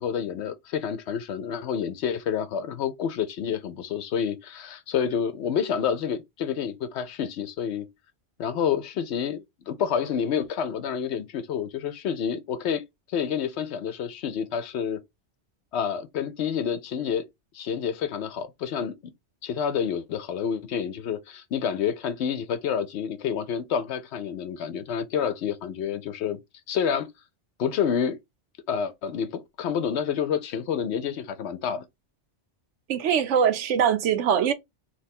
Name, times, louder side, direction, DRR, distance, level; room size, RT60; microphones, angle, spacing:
voice 1, 0.0-7.9 8.4-12.8 13.1-15.0 15.7-17.3 17.5-18.9 19.4-26.4 26.7-27.1 27.6-28.2 28.7-31.9, left 7 dB, 70° left, 0.8 m, -28 dB
voice 2, 32.9-34.5, right 8 dB, 80° right, 1.0 m, -22 dB
2.9 x 2.2 x 4.1 m
omnidirectional pair, 1.2 m